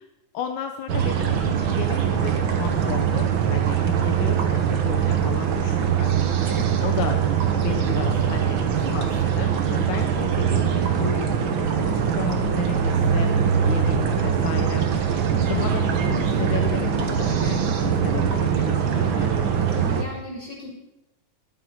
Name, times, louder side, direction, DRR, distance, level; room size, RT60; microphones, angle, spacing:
voice 1, 0.3-6.5 6.8-13.3 13.6-19.6, left 9 dB, 80° left, 5 dB, 2.2 m, -33 dB
sound 1, 0.9-20.0, right 8 dB, 55° right, 1.5 m, -22 dB
voice 2, 19.7-20.7, left 2 dB, 20° left, -5 dB, 5.7 m, -36 dB
12.5 x 8.8 x 6.3 m, 0.93 s
omnidirectional pair, 3.4 m